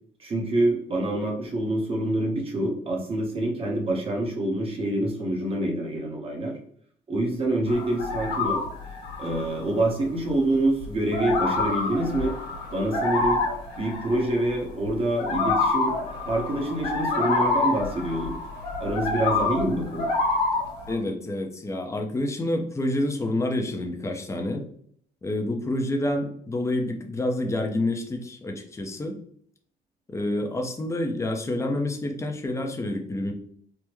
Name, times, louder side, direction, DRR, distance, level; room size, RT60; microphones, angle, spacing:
voice 1, 0.2-6.6 7.1-8.6 9.2-12.4 12.7-13.4 13.8-16.0 16.3-18.4 18.8-20.1, right 1 dB, 35° right, 0 dB, 1.0 m, -26 dB
sound 1, 7.7-9.6 10.0-10.3 10.8-14.9 15.2-20.9, left 3 dB, 80° left, 1.1 m, -27 dB
voice 2, 20.9-24.6 25.2-29.2 30.1-33.3, left 1 dB, 15° left, 3 dB, 0.6 m, -28 dB
3.5 x 2.1 x 3.0 m, 0.62 s
cardioid pair, 110°, 17 cm